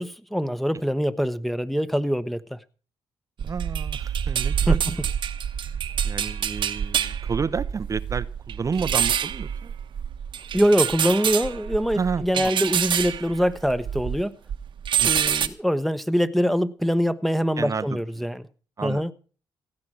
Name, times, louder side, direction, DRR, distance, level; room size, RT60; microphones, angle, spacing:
voice 1, 0.0-2.6 4.7-4.8 10.5-14.4 15.0-18.4 18.8-19.1, equal, ahead, 1.0 m, -24 dB
voice 2, 3.4-4.8 5.6-9.7 10.5-10.6 11.9-12.5 15.0-15.2 17.6-18.3 18.8-19.1, right 5 dB, 35° right, 0.6 m, -31 dB
sound 1, 3.4-14.2 14.5-15.5, right 9 dB, 65° right, 1.0 m, -26 dB
16.0 x 9.6 x 6.2 m
supercardioid pair, 65°, 9 cm